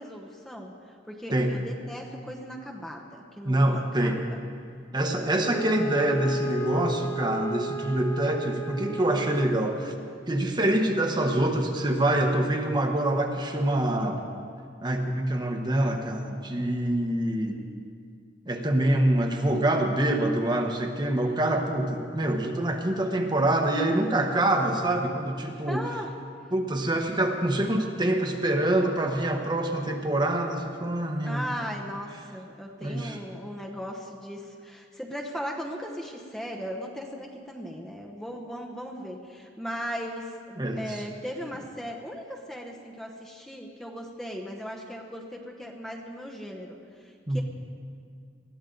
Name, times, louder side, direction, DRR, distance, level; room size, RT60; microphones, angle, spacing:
voice 1, 0.0-4.4 25.7-26.1 31.2-47.4, equal, 5° left, 0 dB, 0.9 m, -38 dB
voice 2, 3.4-4.2 4.9-9.9 10.3-14.3 14.8-17.6 18.5-25.8 26.5-31.4 32.8-33.2 40.6-41.0 47.3-47.4, right 1 dB, 25° right, 3 dB, 1.1 m, -25 dB
Wind instrument woodwind instrument, 5.4-10.0, equal, 25° left, 1.2 m, -33 dB
21.0 x 14.0 x 3.9 m, 2.2 s
head